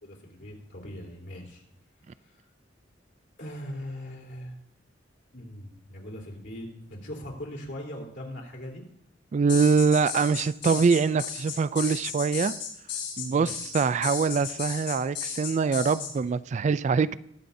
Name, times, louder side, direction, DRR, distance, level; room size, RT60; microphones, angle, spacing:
voice 1, 0.0-1.6 2.2-2.4 3.4-4.6 5.3-8.8 13.3-13.6, left 1 dB, 70° left, 3.5 m, -40 dB
voice 2, 9.3-12.5 13.2-17.2, right 5 dB, 40° right, 0.3 m, -24 dB
sound 1, 9.5-16.1, left 8 dB, 90° left, 5.1 m, -34 dB
21.5 x 8.3 x 2.7 m
head